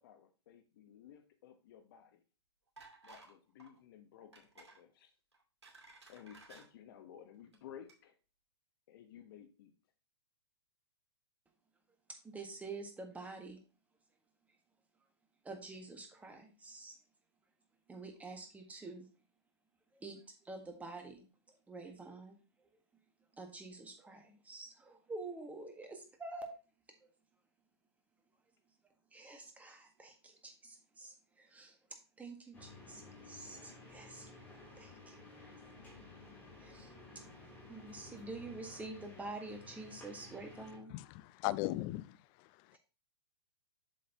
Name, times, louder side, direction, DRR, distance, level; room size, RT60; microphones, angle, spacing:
voice 1, 0.0-2.2 3.0-5.1 5.9-8.2 8.9-9.7 35.2-35.7, left 9 dB, 55° left, 1.1 m, -56 dB
sound 1, 2.8-3.3 3.6-3.8 4.3-4.8 5.3-6.7 7.4-7.6 7.9-8.0, right 3 dB, 80° right, 2.4 m, -57 dB
voice 2, 12.2-13.6 15.4-16.9 17.9-19.1 19.9-21.2 21.7-22.4 23.4-26.6 29.1-31.8 32.2-34.3 34.8-35.2 36.6-36.9 37.7-40.9 42.7-42.8, right 3 dB, 10° right, 1.5 m, -47 dB
sound 2, 32.5-40.8, left 2 dB, 10° left, 3.2 m, -54 dB
voice 3, 40.9-42.2, left 18 dB, 35° left, 0.4 m, -37 dB
7.6 x 6.5 x 2.9 m
figure-of-eight pair, 110°, 14 cm